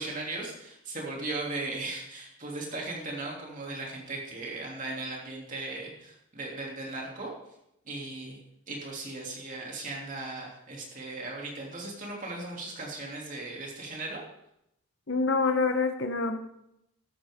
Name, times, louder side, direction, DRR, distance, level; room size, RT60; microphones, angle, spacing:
voice 1, 0.0-7.3 7.8-8.4 8.7-14.2, right 2 dB, 35° right, -2 dB, 3.0 m, -37 dB
voice 2, 15.1-16.4, left 4 dB, 55° left, 5 dB, 1.0 m, -26 dB
13.0 x 13.0 x 3.7 m, 0.81 s
head